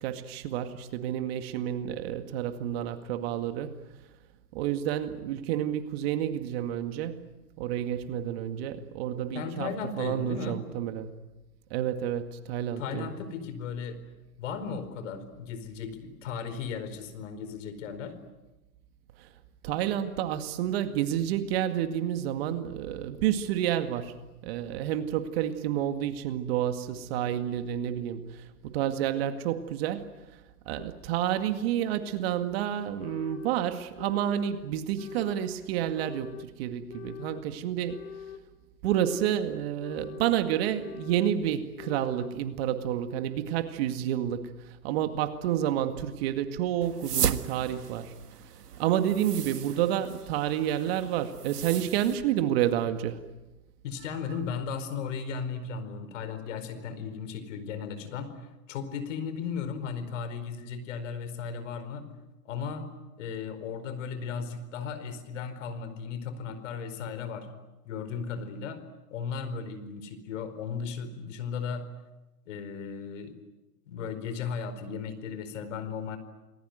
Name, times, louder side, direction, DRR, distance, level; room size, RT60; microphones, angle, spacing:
voice 1, 0.0-3.7 4.5-7.2 7.6-9.7 10.0-11.1 11.7-13.1 19.6-24.2 24.4-28.3 28.6-30.1 30.7-38.1 38.8-44.5 44.8-48.1 48.8-53.2, right 11 dB, 40° right, 8 dB, 2.1 m, -29 dB
voice 2, 9.3-10.6 12.8-14.0 14.4-18.2 53.8-58.3 58.7-62.1 62.4-62.9 63.2-67.5 67.8-68.8 69.1-71.9 72.5-73.3 73.9-76.2, left 6 dB, 50° left, 11 dB, 4.7 m, -36 dB
sound 1, 30.8-30.9 31.8-31.9 32.8-33.6 34.0-34.5 35.0-35.5 35.9-36.5 36.9-37.5 37.9-38.4 38.8-39.4 39.8-40.4 40.8-41.4 41.8-42.3, left 8 dB, 35° left, 2.7 m, -43 dB
sound 2, 46.8-52.2, right 8 dB, 80° right, 1.7 m, -35 dB
28.5 x 20.0 x 9.4 m, 1.1 s
hypercardioid pair, 135°, 46 cm